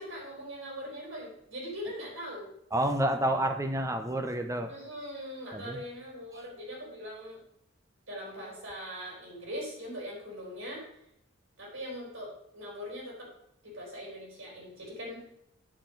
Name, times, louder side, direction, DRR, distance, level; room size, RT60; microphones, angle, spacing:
voice 1, 0.0-2.5 4.7-7.4 8.1-10.8 11.6-13.3 13.6-15.2, equal, 65° right, -4 dB, 4.0 m, -41 dB
voice 2, 2.7-4.7 5.5-5.8 6.3-6.4, right 1 dB, 15° right, 6 dB, 0.6 m, -29 dB
9.3 x 5.1 x 5.1 m, 0.76 s
head